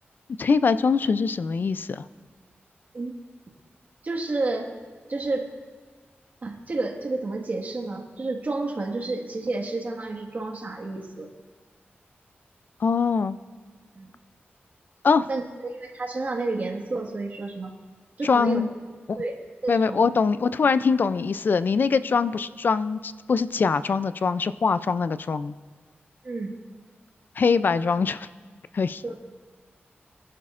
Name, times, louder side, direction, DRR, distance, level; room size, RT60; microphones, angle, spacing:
voice 1, 0.4-2.0 12.8-13.4 15.0-15.3 18.2-18.7 19.1-19.2 19.7-25.5 27.4-28.3 28.7-29.0, left 5 dB, 55° left, 14 dB, 0.4 m, -23 dB
voice 2, 4.0-4.7 5.1-5.5 6.4-11.3 13.9-14.1 15.3-17.7 18.2-18.6 19.2-20.0 26.2-26.6 29.0-29.1, right 3 dB, 45° right, 1 dB, 1.6 m, -30 dB
23.0 x 11.0 x 2.5 m, 1.5 s
wide cardioid pair, 130°, 4 cm